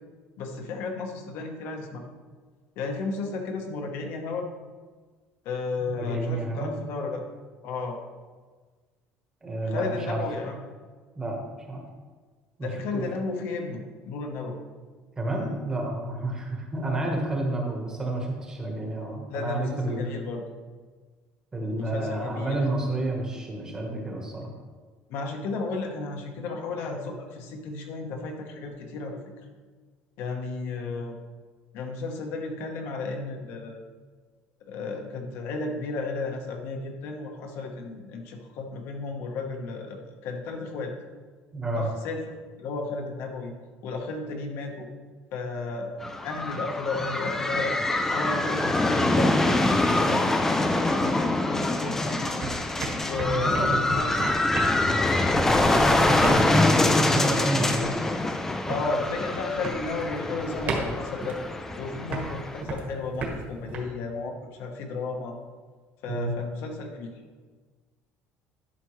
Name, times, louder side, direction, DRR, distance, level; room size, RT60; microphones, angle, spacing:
voice 1, 0.4-2.0 2.8-4.5 5.4-7.2 7.6-8.0 9.6-10.6 12.6-14.6 19.3-20.4 21.8-22.6 25.1-29.2 30.2-31.1 31.7-33.8 34.7-40.9 41.7-42.2 42.6-43.5 43.8-44.9 45.3-46.0 46.2-47.8 48.1-52.4 53.0-54.3 55.8-56.5 58.7-61.4 61.7-65.4 66.0-67.1, left 3 dB, 60° left, 3 dB, 1.1 m, -33 dB
voice 2, 6.0-6.8 9.4-10.2 11.1-11.4 11.7-11.8 12.6-13.0 15.2-20.1 21.5-24.5 41.5-41.9 53.3-53.9 55.5-56.3 56.8-58.0 66.1-66.3, right 2 dB, 15° right, 0 dB, 1.2 m, -30 dB
sound 1, 46.0-62.6, left 2 dB, 10° left, 0.4 m, -25 dB
sound 2, 50.8-52.0 52.2-63.8, right 3 dB, 35° right, 1.5 m, -36 dB
11.0 x 5.9 x 3.2 m, 1.4 s
cardioid pair, 175°, 5 cm